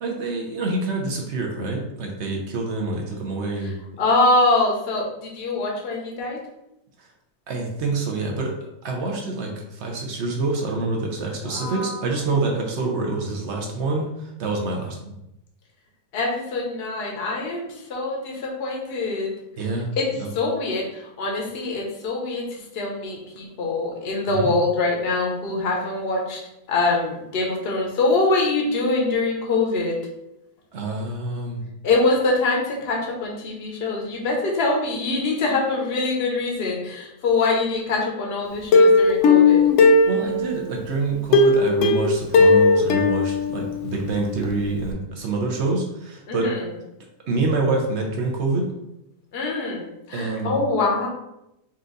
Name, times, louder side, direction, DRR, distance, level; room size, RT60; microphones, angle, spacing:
voice 1, 0.0-3.7 7.5-8.5 8.8-15.1 19.6-19.9 20.2-20.3 24.3-24.5 30.7-31.6 40.1-46.5 47.3-48.7 50.1-50.5, right 3 dB, 60° right, 1 dB, 0.7 m, -26 dB
voice 2, 4.0-6.4 11.5-12.0 16.1-19.3 20.0-20.1 20.3-26.4 26.7-30.0 31.8-39.6 46.3-46.7 49.3-51.1, left 3 dB, 45° left, -1 dB, 0.9 m, -24 dB
Plucked string instrument, 38.7-40.7 41.3-44.1 44.4-44.5 44.9-45.0, left 3 dB, 80° left, 0.7 m, -16 dB
4.4 x 2.5 x 3.8 m, 0.86 s
omnidirectional pair, 1.9 m